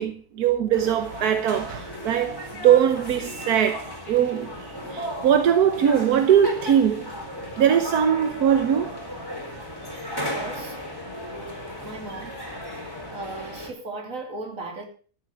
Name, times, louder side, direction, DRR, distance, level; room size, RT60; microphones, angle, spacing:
voice 1, 0.0-7.1 7.6-9.0, right 9 dB, 85° right, 1.5 m, -21 dB
sound 1, 0.7-13.7, left 1 dB, 15° left, 3.7 m, -35 dB
voice 2, 10.2-10.8 11.8-12.4 13.1-14.8, right 2 dB, 60° right, 3.3 m, -36 dB
13.5 x 7.9 x 6.1 m
omnidirectional pair, 1.6 m